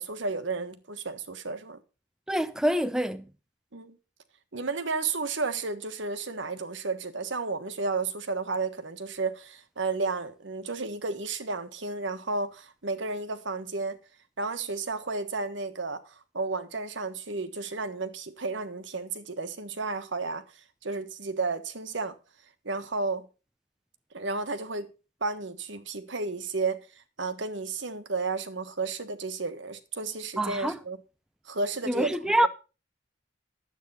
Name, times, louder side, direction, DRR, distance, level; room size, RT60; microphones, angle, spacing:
voice 1, 0.0-1.8 3.7-3.9 4.5-14.0 14.4-20.4 20.8-22.2 22.6-23.3 24.1-24.9 25.2-31.0 31.4-32.1, right 3 dB, 75° right, 1.4 m, -32 dB
voice 2, 2.3-3.3 30.4-30.8 31.9-32.5, right 1 dB, 5° right, 0.5 m, -26 dB
10.5 x 8.3 x 5.7 m
head